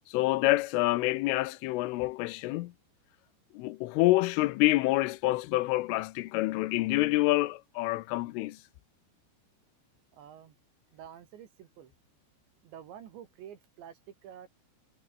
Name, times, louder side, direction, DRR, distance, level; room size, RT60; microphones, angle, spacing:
voice 1, 0.1-2.7 3.5-8.6, left 19 dB, 85° left, 3.5 m, -27 dB
voice 2, 10.1-10.5 10.9-11.9 12.6-14.5, right 9 dB, 70° right, 4.2 m, -49 dB
omnidirectional pair, 5.6 m